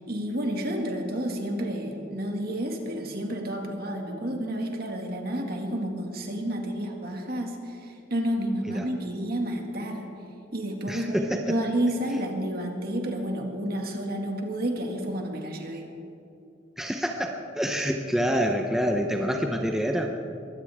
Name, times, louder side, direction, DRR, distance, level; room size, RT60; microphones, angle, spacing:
voice 1, 0.1-10.1 10.5-15.8, right 1 dB, 50° right, 2 dB, 2.0 m, -30 dB
voice 2, 10.9-11.6 16.8-20.1, equal, ahead, 2 dB, 0.7 m, -27 dB
22.5 x 15.5 x 3.6 m, 2.7 s
head